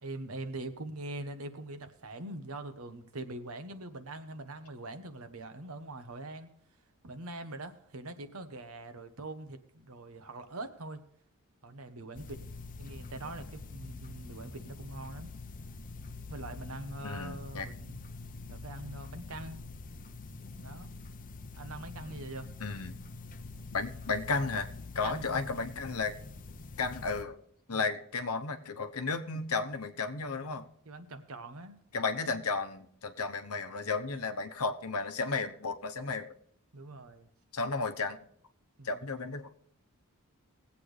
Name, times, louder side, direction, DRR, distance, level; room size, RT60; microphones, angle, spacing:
voice 1, 0.0-6.5 7.0-11.0 11.6-12.4 12.8-15.3 16.3-18.0 18.5-19.7 20.6-20.9 21.5-22.5 25.0-25.3 27.7-27.9 30.8-31.8 36.0-36.1 36.7-37.3 38.8-39.1, right 2 dB, 70° right, 9 dB, 1.1 m, -43 dB
sound 1, 12.1-27.2, left 3 dB, 40° left, 0.7 m, -45 dB
voice 2, 17.0-17.7 22.6-23.0 23.7-26.2 26.8-27.3 27.7-30.6 31.9-36.3 37.5-38.3 38.8-39.5, left 4 dB, 80° left, 7 dB, 1.0 m, -33 dB
20.0 x 8.4 x 3.4 m, 0.66 s
head